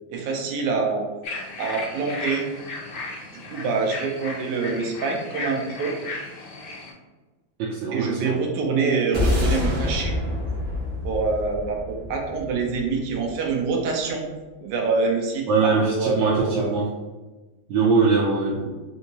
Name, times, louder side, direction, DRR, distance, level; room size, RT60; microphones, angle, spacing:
voice 1, 0.1-1.0 1.6-2.4 3.3-5.9 7.9-10.1 11.0-14.2 14.6-16.7, right 4 dB, 70° right, 1 dB, 1.1 m, -25 dB
sound 1, 1.2-6.9, left 3 dB, 65° left, 1.1 m, -35 dB
voice 2, 7.6-8.3 15.5-17.0 17.7-18.7, right 4 dB, 90° right, -4 dB, 1.3 m, -22 dB
sound 2, 9.1-13.6, left 1 dB, 40° right, 0.8 m, -26 dB
3.5 x 2.8 x 2.8 m, 1.2 s
omnidirectional pair, 2.0 m